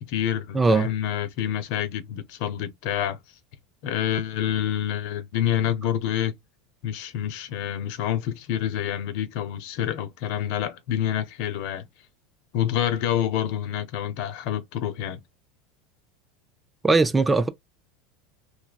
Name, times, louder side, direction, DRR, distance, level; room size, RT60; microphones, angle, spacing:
voice 1, 0.0-3.2 3.8-6.3 6.8-11.9 12.5-15.2, left 10 dB, 60° left, 0.7 m, -27 dB
voice 2, 0.5-0.9 16.8-17.5, right 3 dB, 15° right, 0.5 m, -19 dB
3.3 x 2.1 x 2.3 m
hypercardioid pair, 85°, 0 cm